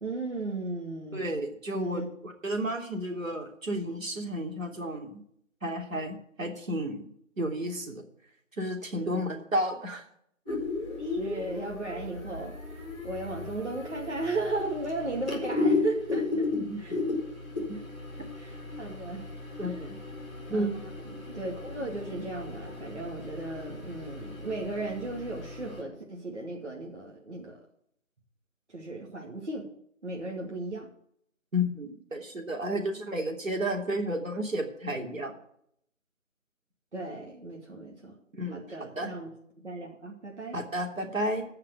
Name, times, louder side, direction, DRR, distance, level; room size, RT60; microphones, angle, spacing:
voice 1, 0.0-1.3 1.7-2.1 8.9-9.4 11.0-12.5 13.0-16.5 16.8-17.0 17.8-17.9 18.4-19.2 19.6-19.9 20.5-27.6 28.7-29.7 30.0-30.9 36.9-38.1 38.5-39.3 39.6-40.6, right 2 dB, 55° right, -2 dB, 2.6 m, -36 dB
voice 2, 1.1-5.2 5.6-7.1 7.4-8.0 8.6-10.0 16.5-16.8 19.6-20.0 20.5-20.8 31.5-35.3 38.3-39.1 40.5-41.4, equal, 75° right, 1 dB, 3.3 m, -32 dB
sound 1, 10.4-25.8, left 3 dB, 5° right, 1.5 m, -35 dB
15.5 x 5.8 x 6.8 m, 0.68 s
figure-of-eight pair, 180°, 40 cm